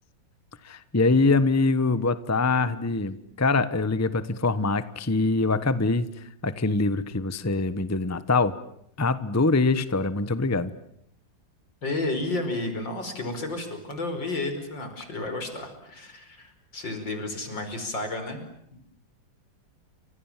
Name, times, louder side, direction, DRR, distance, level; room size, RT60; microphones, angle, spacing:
voice 1, 0.6-6.1 6.4-8.5 9.0-10.7, left 3 dB, 10° left, 14 dB, 0.9 m, -24 dB
voice 2, 11.8-18.4, left 2 dB, 75° left, 7 dB, 5.8 m, -32 dB
29.5 x 26.5 x 7.5 m, 0.73 s
omnidirectional pair, 2.0 m